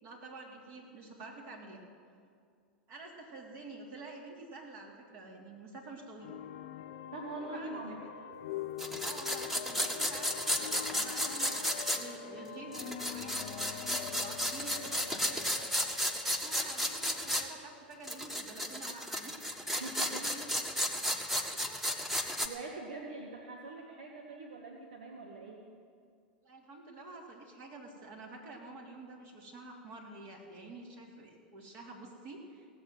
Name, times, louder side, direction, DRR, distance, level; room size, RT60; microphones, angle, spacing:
voice 1, 0.0-1.8 2.9-6.4 7.4-7.8 9.0-15.4 16.4-19.4 21.3-21.8 26.4-32.7, right 2 dB, 50° right, -1 dB, 3.5 m, -48 dB
sound 1, 6.2-17.8, left 9 dB, 60° left, 0.8 m, -45 dB
voice 2, 7.1-8.0 19.8-20.5 22.4-25.7, right 2 dB, 70° right, 0 dB, 1.6 m, -43 dB
sound 2, 8.8-12.0 12.7-17.4 18.0-22.5, equal, 5° right, 1.3 m, -34 dB
17.0 x 8.3 x 9.4 m, 2.2 s
hypercardioid pair, 90°, 5 cm